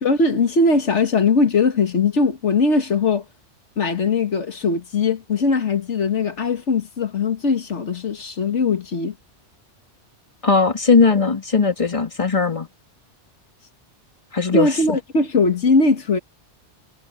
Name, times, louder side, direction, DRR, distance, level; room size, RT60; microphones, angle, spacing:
voice 1, 0.0-3.2 3.8-9.2 14.5-16.2, left 3 dB, 80° left, 1.9 m, -20 dB
voice 2, 10.4-12.7 14.3-15.0, left 4 dB, 30° left, 2.1 m, -18 dB
omnidirectional pair, 1.2 m